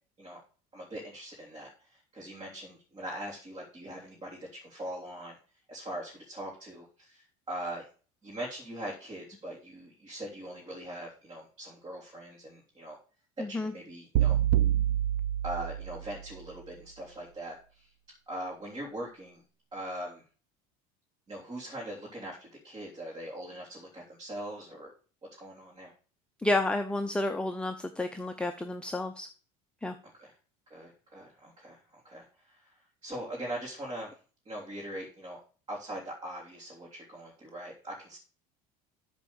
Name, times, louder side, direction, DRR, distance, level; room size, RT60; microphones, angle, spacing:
voice 1, 0.7-5.3 5.7-7.9 8.2-13.0 13.4-14.4 15.4-17.9 18.3-19.4 19.7-20.2 21.3-24.9 25.4-25.9 30.2-30.3 30.7-31.8 32.0-32.7 33.0-34.1 34.4-35.4 35.7-38.2, right 1 dB, 25° right, -4 dB, 3.3 m, -41 dB
voice 2, 13.4-13.7 26.4-29.3 29.8-30.0, left 2 dB, 5° left, 6 dB, 0.6 m, -30 dB
sound 1, 14.2-16.3, right 12 dB, 85° right, 0.6 m, -27 dB
8.4 x 4.3 x 7.1 m, 0.39 s
supercardioid pair, 115°, 19 cm